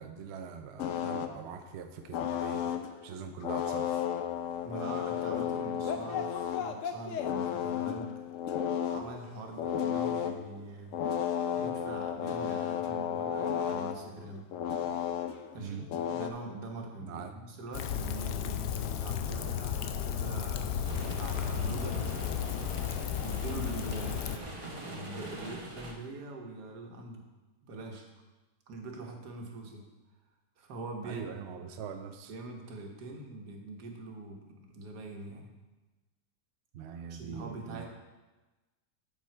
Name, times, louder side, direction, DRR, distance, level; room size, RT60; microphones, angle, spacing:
voice 1, 0.0-4.1 15.6-15.9 17.0-17.3 31.0-32.3 36.7-37.9, right 6 dB, 70° right, 6 dB, 0.6 m, -43 dB
sound 1, 0.8-1.3 2.1-3.0 3.4-9.1 9.5-10.4 10.9-16.3, left 9 dB, 70° left, 0.8 m, -33 dB
voice 2, 4.6-8.1 8.9-10.9 11.5-14.4 15.5-15.8 16.1-22.4 23.2-27.2 27.6-28.1 28.7-29.8 30.6-31.4 32.3-35.5 37.1-37.9, right 2 dB, 85° right, 1 dB, 1.7 m, -43 dB
Rain, 17.7-24.4, left 8 dB, 90° left, 1.2 m, -33 dB
sound 2, 20.8-25.9, right 2 dB, 25° right, 0.8 m, -44 dB
7.4 x 6.9 x 4.5 m, 1.2 s
omnidirectional pair, 1.7 m